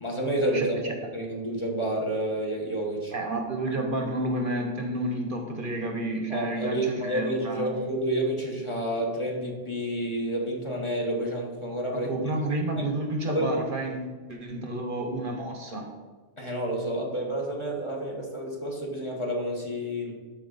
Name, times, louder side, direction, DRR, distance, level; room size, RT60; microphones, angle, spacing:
voice 1, 0.0-0.8 1.1-3.1 6.3-12.1 13.3-13.6 16.4-20.1, right 1 dB, 25° left, -1 dB, 1.3 m, -29 dB
voice 2, 0.5-0.9 3.1-7.7 11.9-15.9, right 2 dB, 50° right, 3 dB, 1.0 m, -30 dB
12.5 x 4.3 x 4.0 m, 1.4 s
omnidirectional pair, 1.2 m